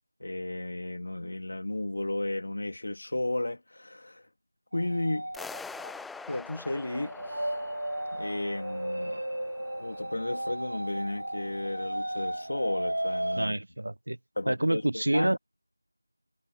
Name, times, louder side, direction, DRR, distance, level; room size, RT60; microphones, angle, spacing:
voice 1, 0.2-4.2 4.7-5.3 6.3-7.4 8.1-9.2 9.8-13.6 14.4-15.4, left 1 dB, 50° left, 2.2 m, -33 dB
sound 1, 4.7-13.5, right 1 dB, 80° right, 1.1 m, -35 dB
sound 2, 5.3-10.3, left 4 dB, ahead, 0.5 m, -46 dB
voice 2, 13.4-14.2 14.5-15.4, right 1 dB, 65° right, 0.4 m, -27 dB
figure-of-eight pair, 175°, 0 cm